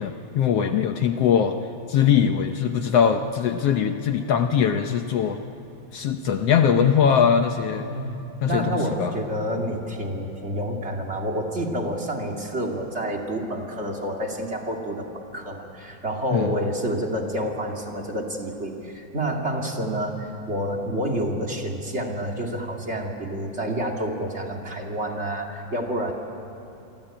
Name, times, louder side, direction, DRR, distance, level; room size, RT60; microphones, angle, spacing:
voice 1, 0.0-1.5 1.9-5.4 5.9-7.9 8.4-9.1 16.3-16.5, left 7 dB, 70° left, 6 dB, 1.6 m, -21 dB
voice 2, 7.7-26.1, right 1 dB, 25° right, 1 dB, 2.1 m, -29 dB
28.5 x 23.5 x 8.9 m, 2.9 s
omnidirectional pair, 3.6 m